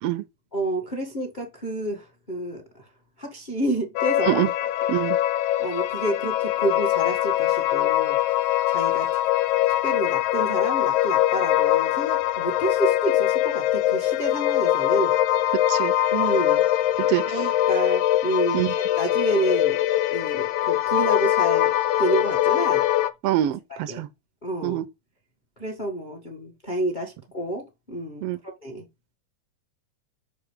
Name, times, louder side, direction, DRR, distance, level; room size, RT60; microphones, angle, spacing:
voice 1, 0.5-2.6 3.2-4.4 5.6-8.2 8.7-9.1 9.8-15.1 16.1-16.6 17.3-19.8 20.1-21.7 22.0-22.8 23.9-24.0 24.4-24.8 25.6-28.8, right 1 dB, 25° left, 1.2 m, -29 dB
sound 1, 4.0-23.1, left 14 dB, 80° left, 2.0 m, -22 dB
voice 2, 17.0-17.5 18.5-18.7 23.2-24.1 24.6-24.9 28.2-28.4, right 14 dB, 80° right, 1.4 m, -25 dB
6.1 x 4.7 x 5.0 m
omnidirectional pair, 3.5 m